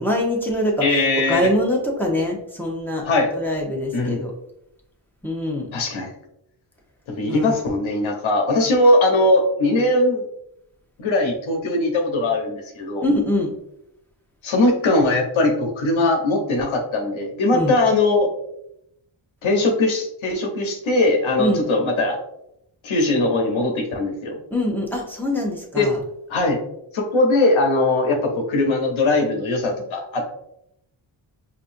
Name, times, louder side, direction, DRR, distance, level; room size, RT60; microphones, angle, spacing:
voice 1, 0.0-0.7 1.3-3.0 3.3-4.3 5.2-5.7 7.3-7.6 13.0-13.5 17.5-17.7 21.4-21.6 24.5-26.0, left 1 dB, 5° left, -2 dB, 1.0 m, -23 dB
voice 2, 0.8-1.5 3.0-3.3 3.9-4.2 5.7-6.1 7.1-10.3 11.0-13.1 14.4-18.3 19.4-22.2 22.8-24.4 25.8-25.9 26.3-26.6 26.9-30.3, left 2 dB, 75° left, 2 dB, 1.0 m, -20 dB
5.3 x 2.6 x 2.6 m, 0.78 s
cardioid pair, 90°, 47 cm